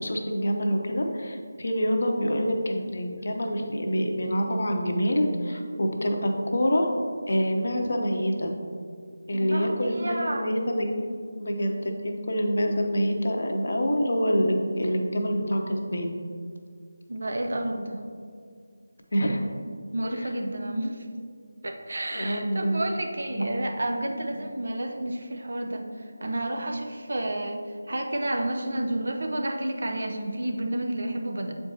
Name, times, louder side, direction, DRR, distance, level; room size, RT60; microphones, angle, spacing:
voice 1, 0.0-6.9 7.3-8.5 9.3-11.0 11.4-16.1 19.1-19.4 22.1-22.8 23.3-23.5, equal, 55° left, 2 dB, 0.8 m, -26 dB
voice 2, 9.3-10.5 17.1-18.0 19.9-21.1 21.6-31.5, right 1 dB, 55° right, 3 dB, 0.7 m, -30 dB
7.5 x 4.5 x 2.8 m, 2.1 s
figure-of-eight pair, 160°, 0 cm